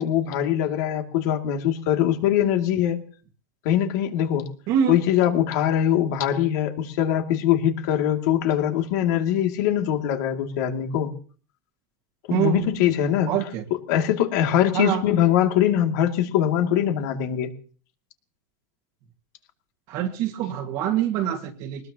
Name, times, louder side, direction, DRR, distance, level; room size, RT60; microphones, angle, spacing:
voice 1, 0.0-3.0 3.6-4.5 4.9-11.1 12.3-13.3 13.9-17.5, left 10 dB, 55° left, 4 dB, 2.6 m, -22 dB
voice 2, 4.7-5.0 12.3-12.6 13.3-13.6 14.7-15.0 19.9-21.9, right 10 dB, 40° right, 1 dB, 1.9 m, -25 dB
22.5 x 20.0 x 3.0 m, 0.41 s
supercardioid pair, 175°, 11 cm